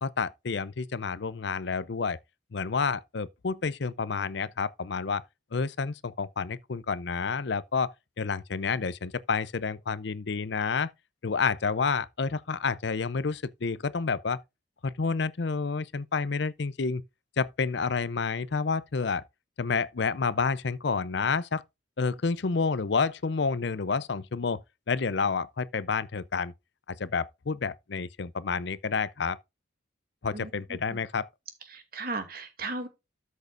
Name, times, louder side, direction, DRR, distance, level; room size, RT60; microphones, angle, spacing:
voice 1, 0.0-2.2 2.5-5.2 5.5-10.9 11.2-14.4 14.8-17.0 17.4-19.2 19.6-21.6 22.0-24.6 24.9-26.5 27.0-29.4 30.2-31.3, left 5 dB, 60° left, 0.6 m, -29 dB
voice 2, 30.3-31.0 31.7-32.9, right 3 dB, 50° right, 2.5 m, -36 dB
13.5 x 6.5 x 2.5 m
head